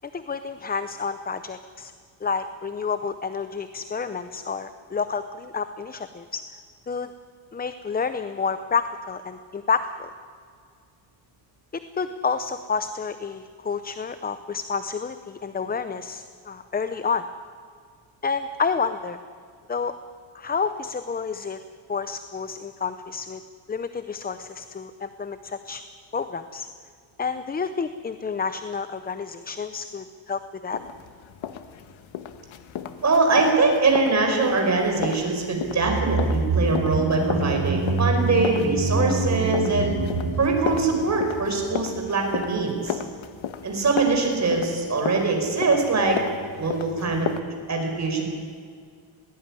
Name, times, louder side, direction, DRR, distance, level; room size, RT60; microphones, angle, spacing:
voice 1, 0.1-1.9 2.2-6.4 6.9-7.1 7.5-10.1 12.0-17.3 18.2-19.2 19.7-19.9 20.3-21.6 21.9-23.4 23.7-25.8 26.1-26.7 27.2-30.8, left 5 dB, 20° left, 11 dB, 0.6 m, -29 dB
sound 1, 30.7-47.4, left 9 dB, 75° left, 1.5 m, -35 dB
voice 2, 33.0-40.0 40.4-43.0 43.6-46.2 46.6-48.3, right 3 dB, 35° right, 2 dB, 5.0 m, -23 dB
sound 2, 35.6-42.0 42.3-42.4, right 3 dB, 65° right, 7.4 m, -26 dB
21.0 x 18.5 x 9.9 m, 2.1 s
wide cardioid pair, 155°, 47 cm